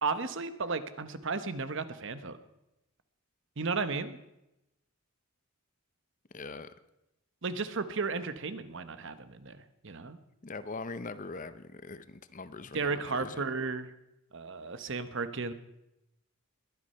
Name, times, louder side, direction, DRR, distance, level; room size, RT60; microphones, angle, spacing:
voice 1, 0.0-2.4 3.6-4.2 7.4-10.2 12.7-13.9 14.3-15.5, right 4 dB, 55° right, 12 dB, 1.0 m, -34 dB
voice 2, 6.3-6.7 10.4-13.4, left 3 dB, 35° left, 13 dB, 0.7 m, -42 dB
22.0 x 9.6 x 5.6 m, 0.90 s
head